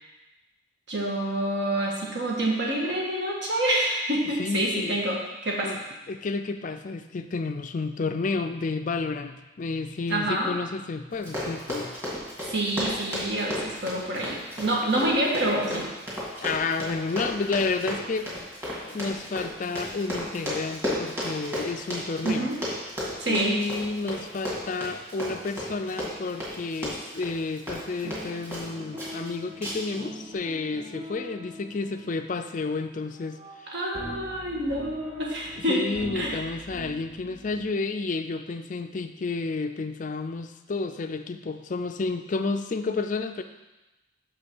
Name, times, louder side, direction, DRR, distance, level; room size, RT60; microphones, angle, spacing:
voice 1, 0.9-5.8 10.1-10.5 12.4-15.8 22.2-22.6 23.2-23.6 33.7-35.9 36.1-36.4, right 1 dB, 60° right, -2 dB, 1.7 m, -27 dB
voice 2, 4.4-5.0 5.6-5.8 6.1-11.9 14.8-14.9 16.4-18.3 18.8-22.5 23.3-33.4 33.6-33.8 35.7-43.4, left 3 dB, 40° left, 8 dB, 0.4 m, -31 dB
Run, 11.1-28.7 29.0-29.3 29.6-30.0 30.3-30.4, left 1 dB, 15° right, 2.2 m, -34 dB
sound 1, 28.0-37.8, equal, 30° right, 0.6 m, -43 dB
6.1 x 5.4 x 6.1 m, 1.0 s
head